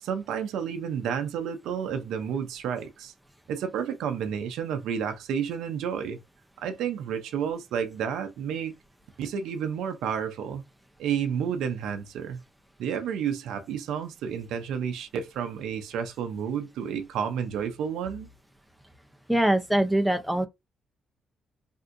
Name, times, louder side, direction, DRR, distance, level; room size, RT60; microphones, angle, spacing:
voice 1, 0.0-3.1 3.5-6.2 6.6-8.7 9.2-10.6 11.0-12.4 12.8-18.3, right 7 dB, 85° right, 0.5 m, -31 dB
voice 2, 19.3-20.5, right 1 dB, ahead, 0.5 m, -23 dB
3.5 x 2.6 x 2.5 m
cardioid pair, 90°, 0 cm